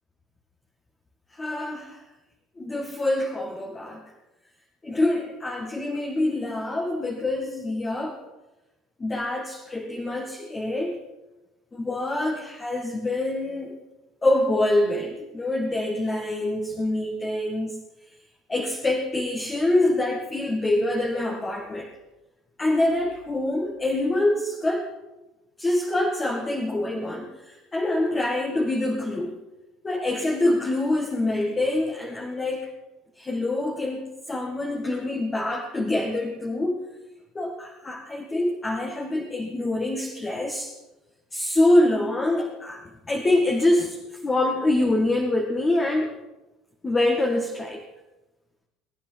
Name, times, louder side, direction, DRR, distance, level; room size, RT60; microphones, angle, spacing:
voice 1, 1.3-2.0 2.6-4.0 4.8-8.2 9.0-11.0 11.7-13.8 14.2-17.8 18.5-21.9 22.6-24.9 25.6-29.4 29.8-32.7 33.2-36.9 37.4-40.7 41.3-44.0 44.2-46.2 46.8-47.9, left 1 dB, 25° left, 2 dB, 1.9 m, -25 dB
22.5 x 9.7 x 4.6 m, 1.0 s
hypercardioid pair, 80°, 0 cm